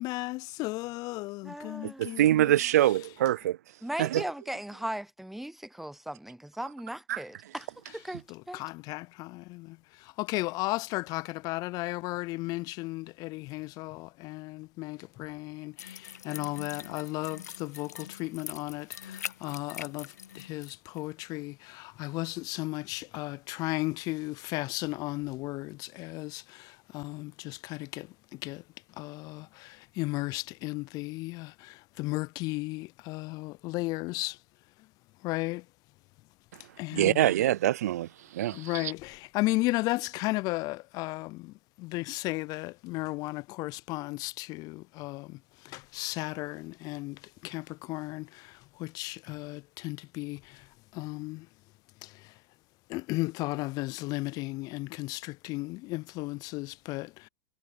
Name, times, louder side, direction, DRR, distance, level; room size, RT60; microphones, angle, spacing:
voice 1, 0.0-2.6 8.3-28.6 29.0-34.4 35.2-35.6 36.8-37.3 38.5-45.4 45.6-50.6 50.9-51.5 52.0-52.1 52.9-57.3, left 21 dB, 45° left, 0.4 m, -35 dB
voice 2, 1.4-2.2 3.8-7.7 7.9-8.6, right 1 dB, 5° right, 0.8 m, -38 dB
voice 3, 2.0-3.6 4.0-4.2 7.1-7.2 36.9-38.9, right 13 dB, 75° right, 0.6 m, -25 dB
sound 1, 15.8-20.7 21.0-21.1, left 9 dB, 85° left, 0.8 m, -43 dB
hypercardioid pair, 95°, 9 cm